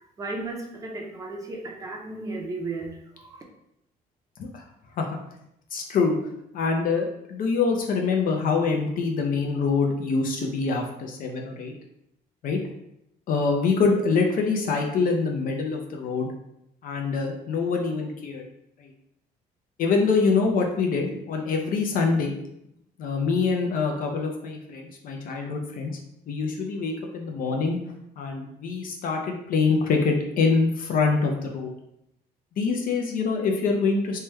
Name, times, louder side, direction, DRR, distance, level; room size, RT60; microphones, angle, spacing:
voice 1, 0.0-3.4, right 2 dB, 20° right, 0 dB, 0.5 m, -35 dB
voice 2, 5.7-6.2 6.5-11.7 12.4-12.6 13.3-16.3 16.8-18.4 18.8-18.9 19.8-22.3 23.0-25.9 26.3-27.8 28.2-31.7 32.6-34.2, left 4 dB, 55° left, 2 dB, 0.5 m, -25 dB
3.1 x 2.2 x 3.1 m, 0.80 s
cardioid pair, 110°, 17 cm